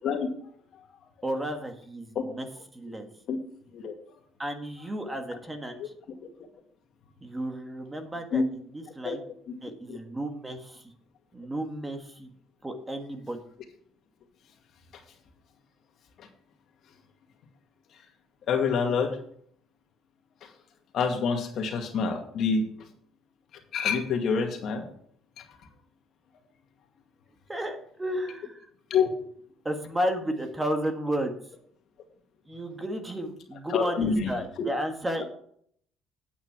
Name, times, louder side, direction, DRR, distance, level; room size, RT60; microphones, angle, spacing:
voice 1, 1.2-2.5 2.7-3.1 4.4-5.9 7.2-9.2 9.6-10.9 11.3-12.3 12.6-13.4 27.5-28.7 29.6-31.3 32.5-35.3, equal, 15° right, 5 dB, 1.5 m, -33 dB
voice 2, 18.5-19.2 20.4-20.5 20.9-22.7 23.7-24.9 25.4-25.5 28.9-29.1 33.7-34.4, left 5 dB, 55° left, 4 dB, 2.2 m, -26 dB
9.4 x 8.6 x 4.7 m, 0.63 s
cardioid pair, 125°, 0 cm